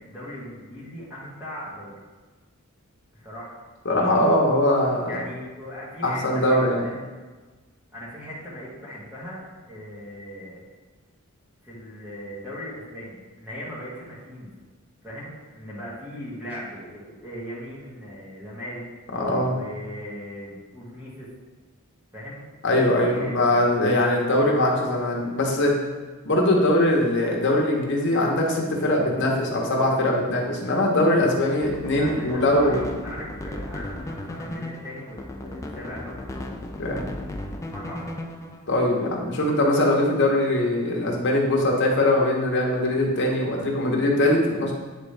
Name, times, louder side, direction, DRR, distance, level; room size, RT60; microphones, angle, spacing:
voice 1, 0.0-2.0 3.1-3.6 5.1-7.1 7.9-10.6 11.6-14.5 15.0-18.8 19.4-21.3 22.1-22.4 23.0-23.7 31.9-36.5 37.7-38.2, equal, 10° right, -9 dB, 1.7 m, -38 dB
voice 2, 3.8-5.2 6.0-6.8 19.1-19.5 22.6-25.7 26.2-32.8 36.8-37.1 38.7-44.7, left 1 dB, 55° left, -1 dB, 1.1 m, -21 dB
sound 1, 31.6-38.6, left 1 dB, 15° left, 0.4 m, -36 dB
8.6 x 3.7 x 3.3 m, 1.3 s
head